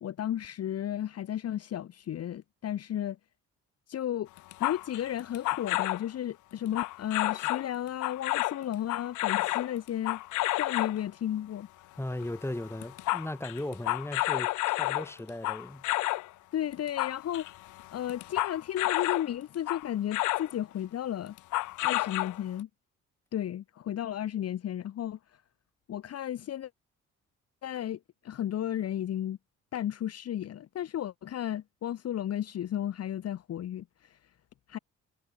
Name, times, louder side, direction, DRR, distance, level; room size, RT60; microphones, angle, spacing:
voice 1, 0.0-3.2 3.9-4.3 4.6-10.2 10.6-11.7 16.5-17.5 17.9-21.4 21.8-22.7 23.3-25.4 25.9-26.7 27.6-29.4 29.7-34.2 34.7-34.8, left 11 dB, 55° left, 0.9 m, -34 dB
sound 1, 4.4-6.0 6.7-7.7 8.0-11.0 12.1-12.4 12.6-16.3 16.7-19.3 19.7-20.5 21.4-22.6, left 18 dB, 75° left, 0.5 m, -30 dB
voice 2, 12.0-15.8, left 1 dB, 10° left, 7.6 m, -37 dB
cardioid pair, 90°, 30 cm